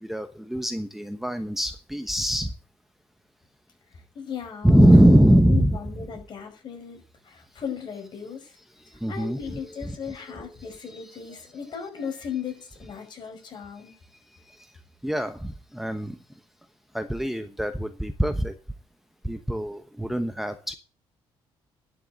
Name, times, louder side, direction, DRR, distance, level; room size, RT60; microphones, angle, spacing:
voice 1, 0.0-2.5 4.6-5.8 9.0-10.0 14.6-14.7 15.0-16.2 16.9-18.5 19.2-20.8, equal, 5° right, 8 dB, 1.1 m, -22 dB
voice 2, 3.9-5.2 5.5-8.5 9.1-13.9, left 7 dB, 50° left, 3 dB, 5.9 m, -37 dB
11.5 x 7.0 x 8.0 m, 0.35 s
cardioid pair, 110°, 10 cm